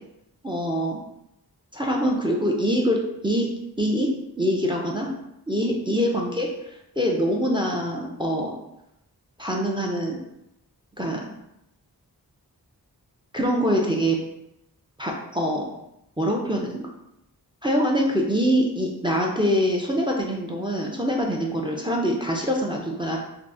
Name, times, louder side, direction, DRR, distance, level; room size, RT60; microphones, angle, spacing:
voice 1, 0.4-1.0 1.7-3.5 3.8-4.1 4.4-5.1 5.5-8.5 9.4-10.2 11.0-11.3 13.3-14.2 15.0-15.7 16.2-16.9 17.6-23.2, equal, 15° right, 0 dB, 0.4 m, -24 dB
3.4 x 2.0 x 2.5 m, 0.84 s
wide cardioid pair, 50°, 39 cm